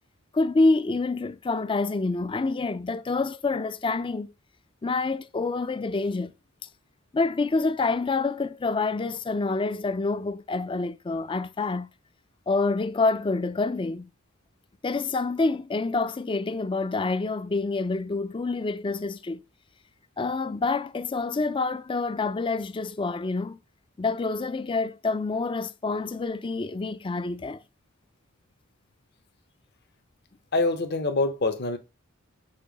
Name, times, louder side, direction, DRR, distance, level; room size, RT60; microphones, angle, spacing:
voice 1, 0.3-4.3 4.8-6.3 7.1-11.9 12.5-14.1 14.8-19.4 20.2-23.6 24.0-27.6, left 3 dB, 25° left, 0.4 m, -27 dB
voice 2, 30.5-31.8, left 2 dB, 55° left, 0.9 m, -25 dB
6.8 x 2.7 x 5.1 m
head